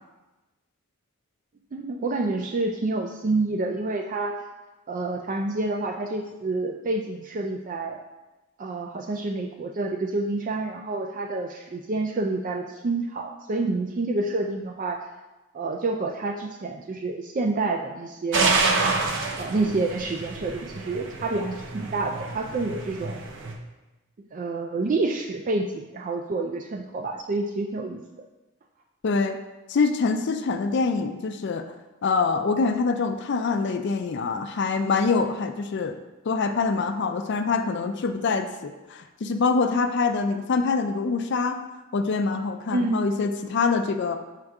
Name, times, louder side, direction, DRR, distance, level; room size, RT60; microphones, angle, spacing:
voice 1, 1.7-4.5 4.9-8.0 8.6-15.1 15.5-18.6 19.4-23.2 24.3-28.0 42.7-43.0, right 3 dB, 35° right, 3 dB, 0.3 m, -28 dB
sound 1, 18.3-23.5, right 3 dB, 55° right, 0.7 m, -28 dB
voice 2, 29.0-29.4 29.7-31.6 32.0-35.9 36.3-41.6 41.9-44.2, left 4 dB, 50° left, 6 dB, 0.4 m, -25 dB
6.5 x 4.5 x 3.5 m, 1.1 s
head